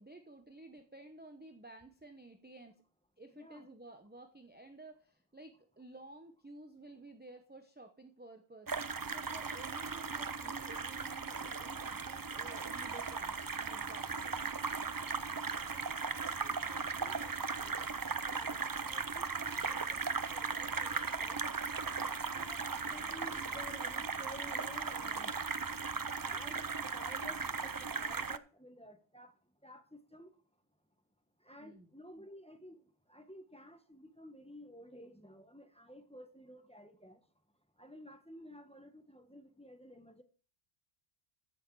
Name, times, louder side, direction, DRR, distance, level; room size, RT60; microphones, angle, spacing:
voice 1, 0.0-2.8 3.2-14.4 31.6-31.9, right 2 dB, 10° right, 0.8 m, -53 dB
voice 2, 3.3-3.7 15.1-15.4 15.7-15.9 16.2-17.9 18.3-21.4 22.0-25.4 26.2-29.3 29.6-30.3 31.4-32.8 33.1-37.2 37.8-40.2, equal, 5° left, 1.1 m, -54 dB
sound 1, 8.7-28.4, right 5 dB, 35° right, 0.3 m, -37 dB
14.5 x 6.4 x 4.7 m
omnidirectional pair, 1.1 m